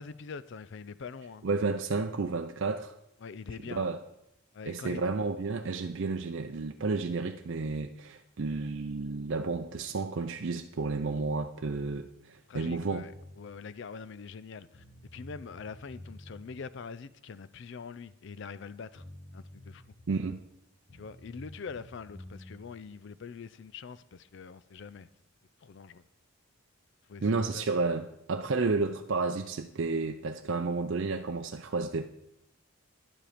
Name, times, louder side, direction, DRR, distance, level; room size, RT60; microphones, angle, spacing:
voice 1, 0.0-1.4 3.2-3.9 4.5-5.1 12.5-19.0 19.3-19.8 20.9-25.1 25.6-26.0 27.1-27.7, left 5 dB, 55° left, 0.4 m, -44 dB
voice 2, 1.4-2.9 3.6-4.0 4.7-13.0 20.1-20.4 27.2-32.0, right 3 dB, 55° right, 0.5 m, -31 dB
sound 1, 12.8-13.4 14.4-14.5 14.7-16.4 18.6-18.7 18.9-20.1 20.9-22.6, left 1 dB, 75° left, 4.3 m, -49 dB
11.0 x 7.6 x 5.0 m
head